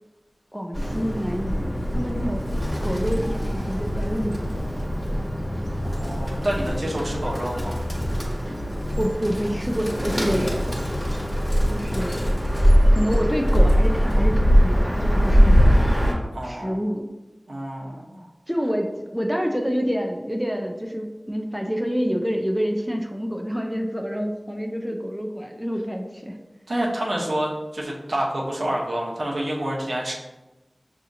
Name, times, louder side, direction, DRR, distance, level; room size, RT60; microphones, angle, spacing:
voice 1, 0.5-2.5 2.8-4.6 9.0-10.6 11.7-12.3 12.9-15.9 16.4-17.1 18.5-26.4, equal, 5° right, 2 dB, 0.5 m, -27 dB
Bird, 0.7-16.1, equal, 20° left, 1.4 m, -22 dB
voice 2, 5.8-7.9 16.3-16.7 17.5-18.2 26.7-30.1, right 1 dB, 85° right, -3 dB, 0.9 m, -28 dB
6.1 x 2.8 x 2.7 m, 1.1 s
wide cardioid pair, 60°, 0 cm